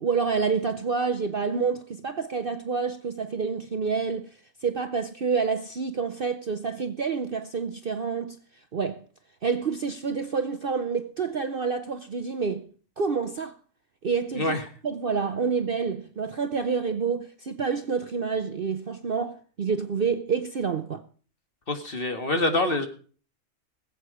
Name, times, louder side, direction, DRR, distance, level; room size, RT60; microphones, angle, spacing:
voice 1, 0.0-8.4 8.7-9.0 9.4-12.7 13.0-13.6 14.0-14.6 14.8-21.0, right 5 dB, 45° right, 0.8 m, -28 dB
voice 2, 21.7-22.9, left 2 dB, 40° left, 1.9 m, -25 dB
20.0 x 8.1 x 4.9 m
omnidirectional pair, 1.5 m